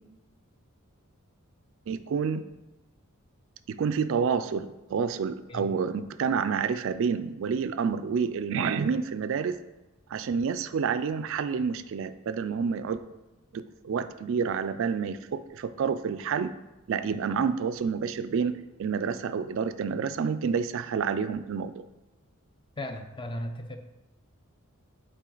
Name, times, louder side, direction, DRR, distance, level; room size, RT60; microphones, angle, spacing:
voice 1, 1.9-2.4 3.7-9.6 10.1-13.0 13.5-16.5 16.9-21.8, right 6 dB, 60° right, 12 dB, 0.3 m, -29 dB
voice 2, 22.8-23.8, left 1 dB, 20° left, 6 dB, 0.5 m, -36 dB
7.3 x 4.7 x 3.9 m, 1.0 s
head